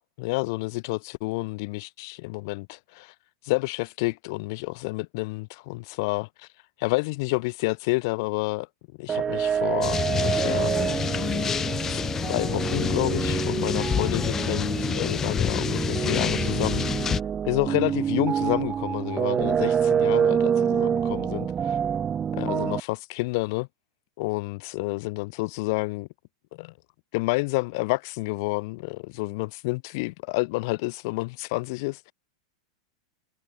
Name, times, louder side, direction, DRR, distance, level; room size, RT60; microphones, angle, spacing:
voice 1, 0.2-3.1 3.4-6.5 6.8-8.7 9.0-11.3 11.9-17.0 17.4-21.8 22.3-23.7 24.2-26.1 26.5-26.7 27.1-32.1, left 25 dB, 45° left, 5.4 m, -29 dB
sound 1, 9.1-22.8, right 8 dB, 15° right, 1.5 m, -27 dB
sound 2, 9.8-17.2, left 7 dB, 15° left, 0.6 m, -28 dB
supercardioid pair, 165°, 3 cm